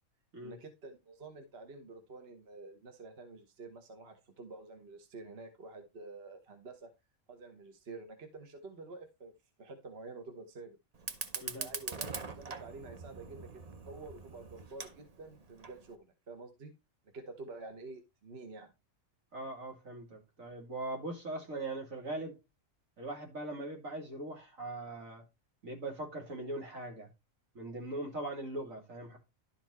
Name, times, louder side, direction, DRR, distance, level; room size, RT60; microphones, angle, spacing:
voice 1, 0.4-6.9 7.3-9.3 9.6-10.8 11.3-16.7 17.1-18.7, right 3 dB, 50° right, 1.4 m, -49 dB
Fire, 10.9-15.9, right 4 dB, 35° right, 0.8 m, -43 dB
voice 2, 19.3-22.4 23.0-25.2 25.6-27.1 27.5-29.2, right 2 dB, 85° right, 3.0 m, -40 dB
11.5 x 4.4 x 4.2 m
omnidirectional pair, 1.4 m